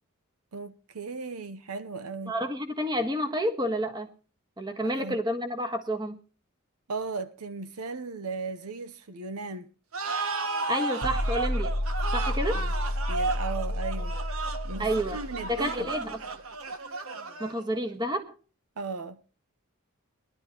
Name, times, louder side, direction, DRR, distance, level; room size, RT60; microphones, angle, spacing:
voice 1, 0.5-2.4 4.8-5.2 6.9-9.7 12.5-12.7 13.1-15.9 18.8-19.2, right 4 dB, 80° right, 0.8 m, -37 dB
voice 2, 2.3-4.1 4.6-6.2 10.7-11.8 12.1-12.6 14.8-15.2 15.5-16.2 17.4-18.3, equal, 20° right, 1.5 m, -30 dB
sound 1, 9.9-17.8, right 3 dB, 65° right, 1.2 m, -33 dB
sound 2, 11.0-16.0, left 1 dB, 55° left, 1.3 m, -31 dB
21.0 x 12.0 x 3.0 m
head